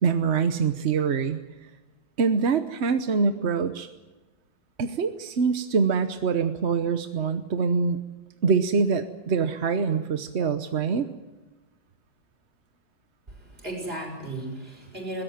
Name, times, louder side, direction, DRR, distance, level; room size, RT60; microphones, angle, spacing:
voice 1, 0.0-1.4 2.2-3.9 4.8-8.0 8.4-11.1, right 5 dB, 45° right, 9 dB, 1.0 m, -24 dB
voice 2, 13.3-15.2, right 1 dB, 30° right, 2 dB, 6.0 m, -35 dB
21.5 x 17.5 x 9.0 m, 1.2 s
omnidirectional pair, 2.1 m